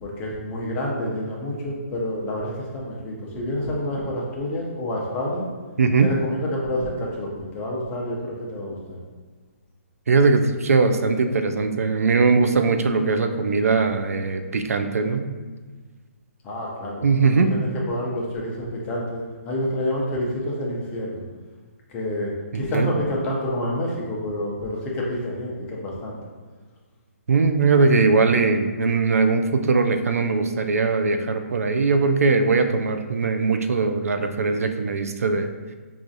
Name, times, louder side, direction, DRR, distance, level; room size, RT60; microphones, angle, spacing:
voice 1, 0.0-5.5 6.0-9.0 16.4-17.2 17.5-21.2 21.9-26.2, left 1 dB, 15° left, -3 dB, 0.5 m, -28 dB
voice 2, 5.8-6.1 10.1-15.3 17.0-17.5 22.5-22.9 27.3-35.5, right 4 dB, 85° right, 7 dB, 0.4 m, -20 dB
4.7 x 2.4 x 2.6 m, 1.4 s
hypercardioid pair, 160°, 8 cm